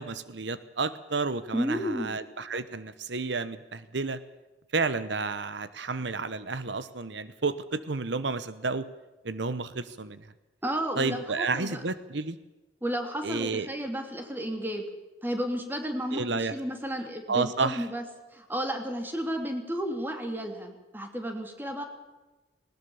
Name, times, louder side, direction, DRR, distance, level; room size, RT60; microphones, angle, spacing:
voice 1, 0.0-4.2 4.7-8.9 9.2-10.3 11.0-12.4 13.2-13.7 16.1-16.5 17.3-17.8, right 4 dB, 85° right, 14 dB, 1.1 m, -31 dB
voice 2, 1.5-2.1 10.6-11.8 12.8-14.9 15.2-18.0 18.3-21.8, equal, 10° right, 4 dB, 3.0 m, -32 dB
20.0 x 19.5 x 7.1 m, 1.1 s
head